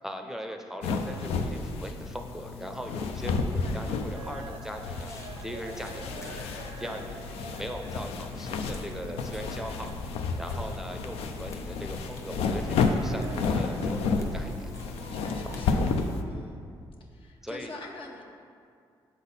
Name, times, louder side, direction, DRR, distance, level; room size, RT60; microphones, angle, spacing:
voice 1, 0.0-5.1 5.4-14.7 17.4-17.7, equal, 5° right, 4 dB, 0.5 m, -40 dB
sound 1, 0.8-16.2, left 4 dB, 85° left, 0.4 m, -31 dB
voice 2, 3.5-3.9 15.1-15.9 16.3-16.7 17.1-18.3, left 3 dB, 65° left, 0 dB, 0.8 m, -45 dB
sound 2, 4.1-15.9, right 3 dB, 70° right, 0.5 m, -48 dB
sound 3, 5.0-15.6, left 2 dB, 30° left, 1.0 m, -47 dB
7.0 x 4.0 x 4.0 m, 2.3 s
supercardioid pair, 60°, 10 cm